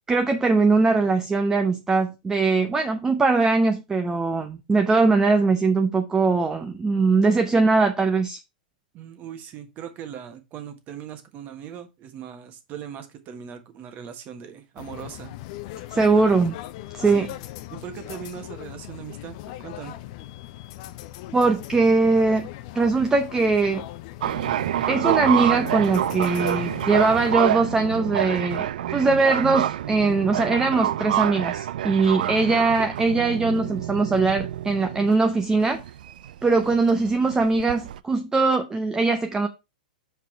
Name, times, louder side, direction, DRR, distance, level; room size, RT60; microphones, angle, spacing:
voice 1, 0.1-8.4 15.9-16.6 16.9-17.3 21.3-22.5 22.7-23.8 24.9-35.8 36.4-39.5, right 3 dB, 10° right, 0.7 m, -21 dB
voice 2, 8.9-15.3 17.1-17.4 17.7-19.9, right 8 dB, 35° right, 1.4 m, -39 dB
sound 1, 14.8-27.3, left 15 dB, 50° left, 0.6 m, -39 dB
sound 2, 24.2-38.0, right 11 dB, 70° right, 0.4 m, -27 dB
5.8 x 4.6 x 4.5 m
hypercardioid pair, 120°, 5 cm